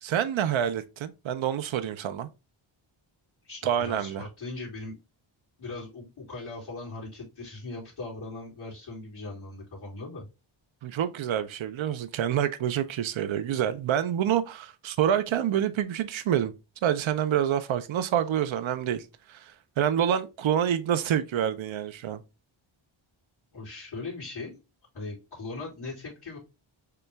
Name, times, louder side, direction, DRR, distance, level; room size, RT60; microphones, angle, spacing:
voice 1, 0.0-2.3 3.6-4.2 10.8-16.5 16.8-19.0 19.3-19.5 19.8-22.2, right 10 dB, 70° right, 0.6 m, -27 dB
voice 2, 3.4-5.0 5.6-10.3 23.5-24.5 24.9-26.4, left 3 dB, 50° left, 2.2 m, -39 dB
6.8 x 2.3 x 3.3 m
wide cardioid pair, 140°, 50 cm